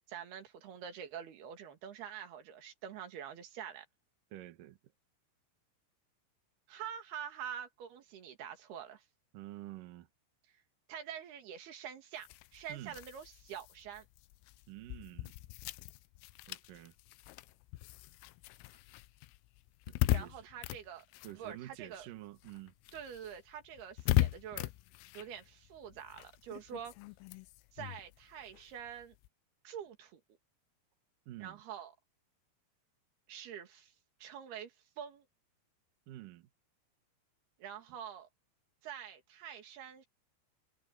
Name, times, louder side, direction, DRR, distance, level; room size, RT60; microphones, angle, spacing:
voice 1, 0.1-3.9 6.7-9.0 10.9-14.1 20.1-21.1 21.4-22.1 22.9-24.7 25.1-26.9 27.7-29.2 29.6-30.2 31.4-31.9 33.3-33.9 34.2-35.3 37.6-38.3 38.8-40.1, right 8 dB, 60° right, 3.8 m, -46 dB
voice 2, 4.3-4.8 9.3-10.1 12.7-13.0 14.7-15.4 16.5-16.9 18.7-18.8 19.9-20.5 21.2-22.7 31.3-31.6 36.1-36.5, right 15 dB, 90° right, 1.9 m, -49 dB
sound 1, 12.2-22.1 22.3-29.3, left 17 dB, 90° left, 3.2 m, -39 dB
omnidirectional pair, 5.8 m